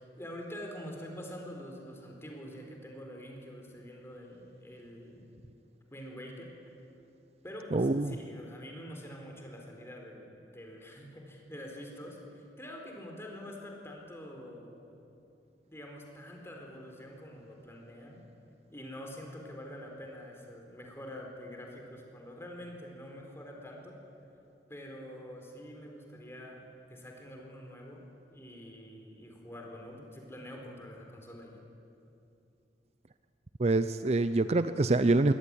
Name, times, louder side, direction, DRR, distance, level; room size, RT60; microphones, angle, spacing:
voice 1, 0.0-5.2 5.9-6.5 7.4-15.0 15.7-18.2 18.7-24.0 24.7-28.0 28.3-31.6, equal, 15° left, 1 dB, 4.1 m, -46 dB
voice 2, 7.7-8.1 33.6-35.3, right 2 dB, 40° right, 12 dB, 0.5 m, -25 dB
22.5 x 17.5 x 10.0 m, 2.7 s
head